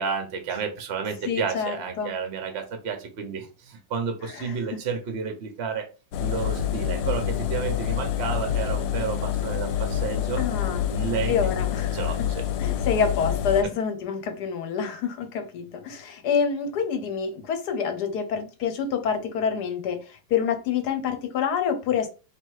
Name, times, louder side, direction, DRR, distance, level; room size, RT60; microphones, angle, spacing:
voice 1, 0.0-5.9 6.2-10.4 10.9-11.5 11.9-12.4, right 6 dB, 60° right, 0.7 m, -31 dB
voice 2, 1.3-2.1 4.2-4.6 10.4-10.8 11.3-12.0 12.6-22.1, left 7 dB, 70° left, 1.1 m, -27 dB
Engine, 6.1-13.6, left 10 dB, 90° left, 1.3 m, -27 dB
3.3 x 2.8 x 4.6 m
omnidirectional pair, 2.0 m